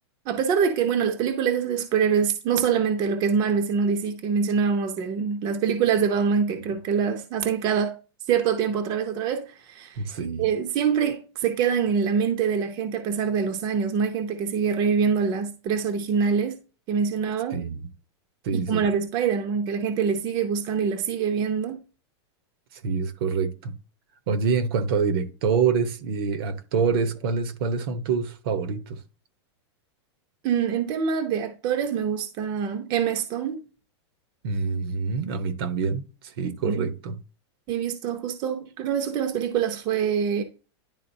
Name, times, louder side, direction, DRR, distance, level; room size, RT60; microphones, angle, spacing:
voice 1, 0.3-8.0 8.3-10.0 10.4-16.6 16.9-17.6 18.5-21.8 30.4-33.6 36.6-36.9 37.7-40.4, right 6 dB, 30° right, 0.7 m, -25 dB
voice 2, 10.0-10.4 17.5-17.8 18.4-18.9 22.8-23.8 24.3-29.0 34.4-37.2, right 5 dB, 55° right, 0.9 m, -26 dB
10.5 x 3.7 x 2.7 m
supercardioid pair, 155°, 14 cm